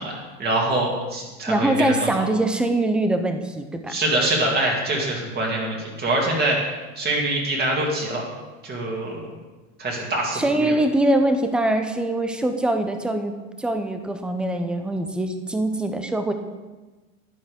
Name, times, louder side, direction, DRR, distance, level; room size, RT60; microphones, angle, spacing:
voice 1, 0.0-2.1 3.9-6.6 7.0-8.2 8.6-9.3 9.8-10.7, right 2 dB, 25° right, -1 dB, 2.4 m, -24 dB
voice 2, 1.5-4.0 10.3-16.3, right 1 dB, 5° right, 7 dB, 0.3 m, -23 dB
11.5 x 8.8 x 3.6 m, 1.2 s
supercardioid pair, 135°, 37 cm